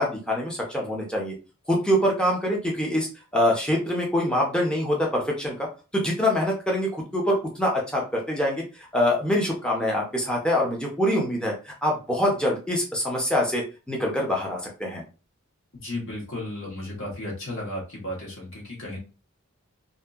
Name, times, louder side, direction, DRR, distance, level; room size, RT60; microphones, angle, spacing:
voice 1, 0.0-1.3 1.7-3.1 3.3-5.7 5.9-15.0, left 1 dB, 5° left, -2 dB, 0.6 m, -25 dB
voice 2, 15.7-19.0, left 1 dB, 65° left, -3 dB, 1.2 m, -34 dB
2.7 x 2.6 x 2.3 m, 0.33 s
head